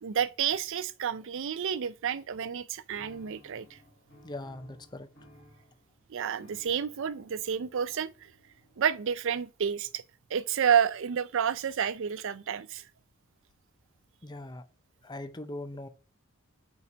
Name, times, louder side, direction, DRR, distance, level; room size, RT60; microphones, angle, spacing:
voice 1, 0.0-3.8 6.1-8.3 8.8-10.0 10.3-12.8, right 8 dB, 60° right, 0.4 m, -30 dB
sound 1, 2.9-9.4, equal, 45° left, 3.2 m, -58 dB
voice 2, 4.2-5.1 14.2-14.6 15.0-15.9, left 1 dB, 20° left, 0.5 m, -40 dB
5.6 x 4.7 x 5.1 m
head